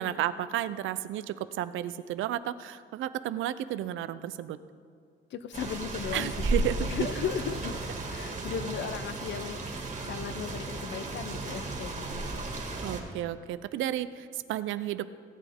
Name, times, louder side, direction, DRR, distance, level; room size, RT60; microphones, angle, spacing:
voice 1, 0.0-4.6 6.1-6.8 12.8-15.1, right 12 dB, 80° right, 14 dB, 0.5 m, -32 dB
voice 2, 5.3-6.3 6.9-7.7 8.1-12.5, left 8 dB, 65° left, 12 dB, 0.6 m, -36 dB
sound 1, 5.5-13.0, right 2 dB, 40° right, 2.1 m, -34 dB
18.0 x 8.5 x 3.5 m, 2.1 s
cardioid pair, 90°, 20 cm